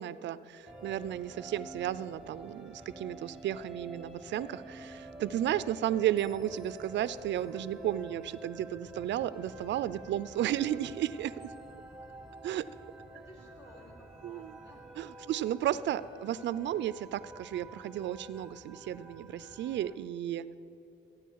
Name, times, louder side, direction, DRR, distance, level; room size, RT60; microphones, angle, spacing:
voice 1, 0.0-11.5 12.4-12.7 14.2-14.5 15.0-20.6, right 11 dB, 65° right, 16 dB, 0.4 m, -33 dB
sound 1, 0.7-20.0, right 1 dB, ahead, 0.8 m, -49 dB
voice 2, 13.1-14.8 15.2-15.3, left 1 dB, 65° left, -3 dB, 3.1 m, -55 dB
15.0 x 8.7 x 4.6 m, 2.8 s
cardioid pair, 90°, 20 cm